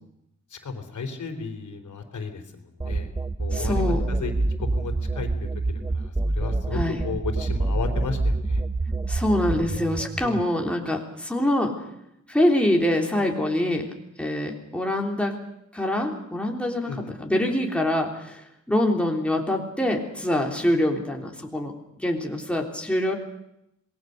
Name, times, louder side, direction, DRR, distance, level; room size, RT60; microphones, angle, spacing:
voice 1, 0.5-3.1 3.4-4.3 4.6-5.3 5.9-8.6 16.8-17.1, left 4 dB, 75° left, 6 dB, 3.8 m, -34 dB
sound 1, 2.8-10.4, right 2 dB, 15° right, 0.8 m, -26 dB
voice 2, 3.5-4.0 6.7-7.0 9.1-11.7 12.3-13.9 14.2-15.4 15.7-21.7 22.0-23.1, left 1 dB, 5° left, 0 dB, 3.4 m, -25 dB
27.0 x 20.0 x 6.7 m, 0.82 s
wide cardioid pair, 115°, 30 cm